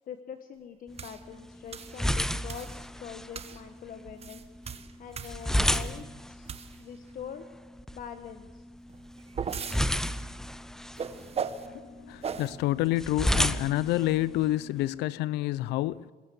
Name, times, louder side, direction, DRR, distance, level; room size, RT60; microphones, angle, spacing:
voice 1, 0.1-2.7 3.0-4.4 5.0-7.4 7.9-8.7, left 8 dB, 55° left, 1.2 m, -44 dB
sound 1, 0.9-14.9, equal, 5° left, 0.7 m, -33 dB
sound 2, 1.0-1.2 1.7-2.0 2.5-2.8 3.3-3.6 4.1-6.0 6.4-7.0 8.9-9.8 11.0-11.7 12.2-12.5, right 6 dB, 35° right, 1.5 m, -37 dB
voice 2, 12.0-16.1, left 15 dB, 90° left, 0.6 m, -28 dB
23.5 x 21.0 x 7.7 m
cardioid pair, 110°, 17 cm